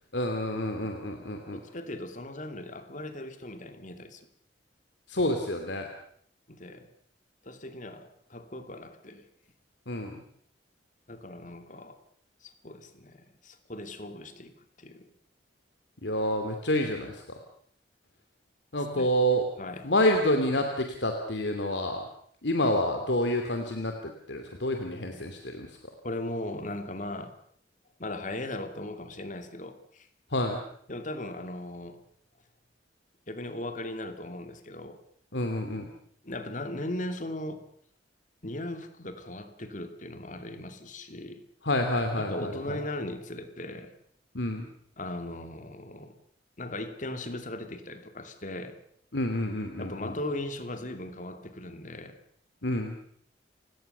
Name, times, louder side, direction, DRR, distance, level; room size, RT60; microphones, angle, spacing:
voice 1, 0.1-1.6 5.1-5.9 9.9-10.2 16.0-17.2 18.7-19.5 19.8-22.0 22.4-23.9 24.3-25.7 30.3-30.6 35.3-35.9 41.6-42.8 44.3-44.7 49.1-50.1 52.6-53.0, left 1 dB, 80° left, 5 dB, 2.7 m, -28 dB
voice 2, 1.5-4.3 6.5-6.9 7.4-9.2 11.1-12.0 12.4-15.1 18.9-19.1 19.6-19.9 24.9-25.2 26.0-27.4 28.0-30.1 30.9-32.0 33.3-35.0 36.2-37.6 38.4-41.4 42.1-43.9 45.0-46.1 46.6-48.8 49.8-52.2, left 1 dB, 45° left, 8 dB, 2.6 m, -38 dB
30.0 x 18.0 x 6.8 m, 0.64 s
head